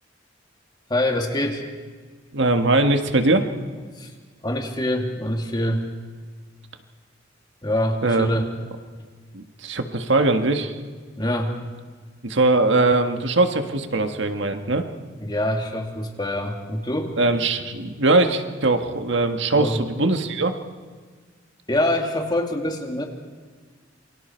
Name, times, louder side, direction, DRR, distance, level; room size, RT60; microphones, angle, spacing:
voice 1, 0.9-1.6 4.0-4.1 4.4-5.9 7.6-8.5 11.2-11.6 15.2-17.2 19.5-19.8 21.7-23.0, left 1 dB, 25° left, 2 dB, 2.4 m, -25 dB
voice 2, 2.3-3.5 8.0-8.3 9.3-10.7 12.2-14.8 17.2-20.5, right 2 dB, 70° right, 6 dB, 1.6 m, -21 dB
28.0 x 24.0 x 4.5 m, 1.5 s
head